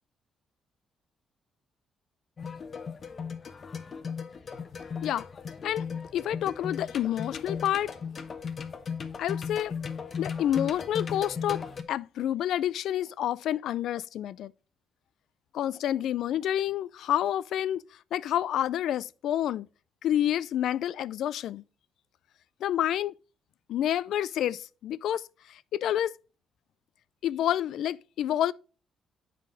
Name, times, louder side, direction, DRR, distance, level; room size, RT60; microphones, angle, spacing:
sound 1, 2.4-11.8, left 6 dB, 45° left, 0.9 m, -37 dB
voice 1, 6.1-7.9 9.2-9.7 10.2-14.5 15.5-17.8 18.1-19.7 20.0-21.6 22.6-23.1 23.7-25.2 25.5-26.1 27.2-28.5, left 11 dB, 75° left, 0.3 m, -28 dB
7.6 x 5.1 x 3.8 m
cardioid pair, 90°, 0 cm